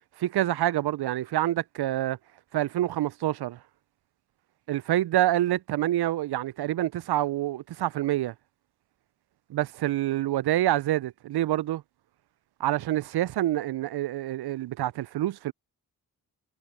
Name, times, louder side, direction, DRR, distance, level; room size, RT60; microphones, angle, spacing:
voice 1, 0.2-2.2 2.5-3.6 4.7-8.3 9.5-11.8 12.6-15.5, right 14 dB, 60° right, 0.5 m, -27 dB
supercardioid pair, 40°, 46 cm